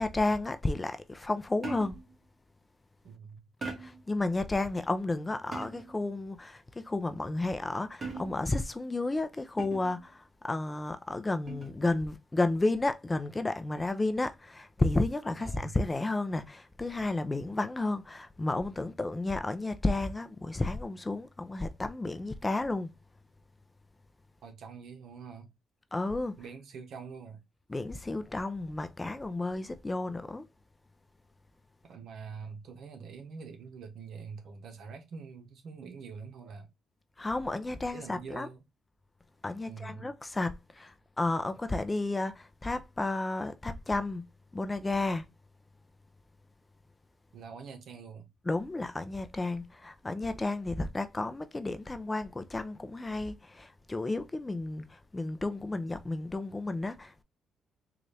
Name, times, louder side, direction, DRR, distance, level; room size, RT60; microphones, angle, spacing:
voice 1, 0.0-2.0 3.8-22.9 25.9-26.4 27.7-30.5 37.2-38.5 39.4-44.2 44.5-45.2 48.5-57.2, left 2 dB, 20° left, 0.5 m, -32 dB
sound 1, 1.6-2.1 3.6-4.1 5.5-6.0 8.0-8.6 9.6-10.0 11.5-11.8, right 3 dB, 30° right, 1.6 m, -40 dB
voice 2, 3.0-3.5 15.4-15.7 24.4-25.5 26.4-27.4 31.8-36.7 37.9-38.6 39.7-40.1 47.3-48.3, right 5 dB, 70° right, 0.9 m, -45 dB
3.9 x 2.4 x 3.3 m
cardioid pair, 90°, 0 cm